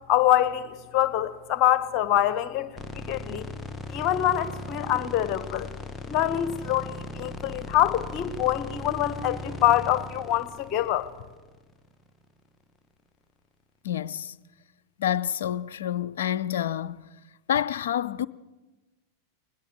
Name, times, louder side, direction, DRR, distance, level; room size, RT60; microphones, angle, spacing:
voice 1, 0.1-2.7 2.9-3.5 3.9-5.7 6.1-11.1, left 12 dB, 40° left, 1.4 m, -25 dB
sound 1, 2.8-11.9, left 1 dB, 15° left, 1.3 m, -38 dB
voice 2, 13.8-14.3 15.0-17.1 17.5-18.3, left 10 dB, 60° left, 0.6 m, -28 dB
20.5 x 20.0 x 7.7 m
figure-of-eight pair, 90°, 0 cm